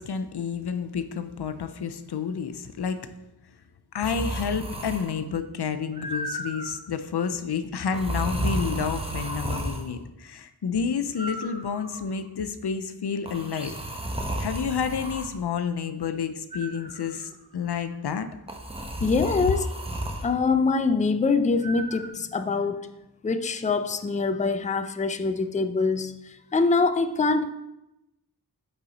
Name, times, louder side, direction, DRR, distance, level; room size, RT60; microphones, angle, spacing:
voice 1, 0.0-3.1 3.9-13.8 14.4-18.3, left 6 dB, 85° left, 0.5 m, -30 dB
sound 1, 4.0-5.2 5.9-6.8 7.9-9.9 11.2-12.1 13.3-15.3 16.5-17.2 18.5-20.3 21.6-22.1, right 1 dB, 15° right, 0.9 m, -33 dB
voice 2, 19.0-19.7 20.2-22.9 23.2-27.5, left 4 dB, 20° left, 0.4 m, -24 dB
5.5 x 5.5 x 4.0 m
wide cardioid pair, 45°, 39 cm